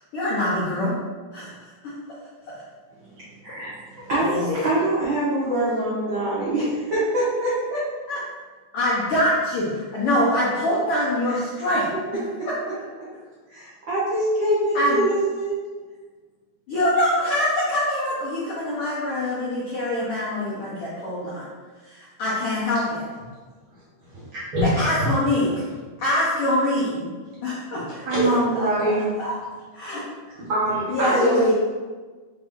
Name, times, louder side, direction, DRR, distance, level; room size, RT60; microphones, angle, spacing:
voice 1, 0.1-0.9 1.3-1.9 4.2-4.7 8.1-8.2 8.7-12.5 14.7-15.0 16.7-21.5 21.8-23.0 24.6-25.6 26.0-27.1 27.4-28.3 28.5-28.7 29.2-29.4 29.7-30.1 30.9-31.5, left 1 dB, 75° left, -7 dB, 1.3 m, -24 dB
voice 2, 4.0-7.9 12.4-12.5 13.5-15.6, right 1 dB, 75° right, -10 dB, 1.1 m, -24 dB
voice 3, 24.1-24.7 28.0-29.1 30.3-31.5, right 1 dB, 55° right, -9 dB, 1.5 m, -24 dB
4.8 x 2.6 x 3.6 m, 1.4 s
omnidirectional pair, 3.5 m